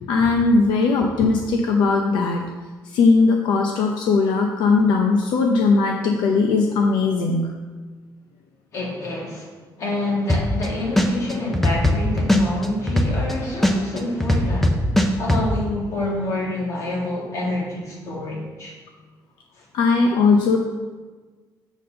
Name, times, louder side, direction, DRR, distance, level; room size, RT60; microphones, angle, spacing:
voice 1, 0.0-2.5 2.8-7.5 19.7-20.6, left 4 dB, 80° left, 2 dB, 0.7 m, -19 dB
voice 2, 8.7-9.5 9.8-14.8 15.2-18.7 19.6-19.7, left 2 dB, 45° left, -3 dB, 2.1 m, -27 dB
sound 1, 10.3-10.7 11.0-13.3 13.6-15.4, left 1 dB, 5° left, 0.6 m, -18 dB
7.0 x 4.3 x 6.5 m, 1.4 s
cardioid pair, 175°, 7 cm